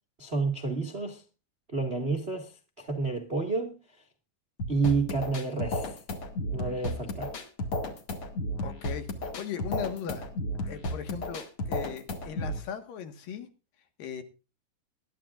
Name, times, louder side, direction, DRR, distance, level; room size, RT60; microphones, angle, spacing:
voice 1, 0.2-1.2 1.7-2.5 2.8-3.8 4.7-6.0 6.5-7.3, right 3 dB, 85° right, 0.5 m, -29 dB
sound 1, 4.6-12.6, left 1 dB, 45° left, 2.4 m, -33 dB
voice 2, 8.6-10.3 10.7-13.5 14.0-14.2, left 7 dB, 70° left, 3.2 m, -38 dB
21.0 x 12.5 x 2.5 m
omnidirectional pair, 4.4 m